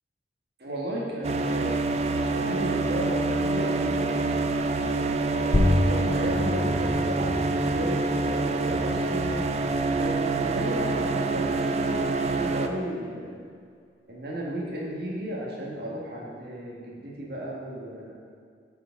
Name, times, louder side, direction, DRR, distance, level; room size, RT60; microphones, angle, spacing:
voice 1, 0.6-1.7 2.2-4.1 5.3-9.4 10.0-13.4 14.1-18.1, right 1 dB, 55° right, -3 dB, 1.6 m, -34 dB
sound 1, 1.2-12.7, right 3 dB, 35° right, 0.3 m, -26 dB
sound 2, 5.5-10.6, left 1 dB, 35° left, 0.6 m, -29 dB
8.8 x 5.0 x 4.6 m, 2.2 s
head